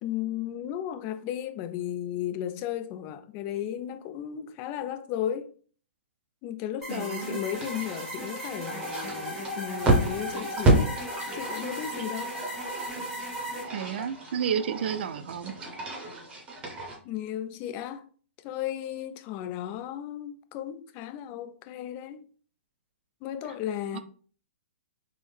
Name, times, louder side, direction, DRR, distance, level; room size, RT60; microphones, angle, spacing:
voice 1, 0.0-5.5 6.4-11.0 11.3-12.3 17.0-18.1 18.4-22.2 23.2-24.0, left 11 dB, 30° left, 0.4 m, -34 dB
sound 1, 6.8-13.6, right 1 dB, ahead, 1.3 m, -36 dB
voice 2, 6.9-7.4 13.7-15.5 23.9-24.0, right 8 dB, 60° right, 0.4 m, -31 dB
sound 2, 7.4-17.0, right 1 dB, 15° right, 0.8 m, -30 dB
3.5 x 2.0 x 3.2 m
hypercardioid pair, 125°, 7 cm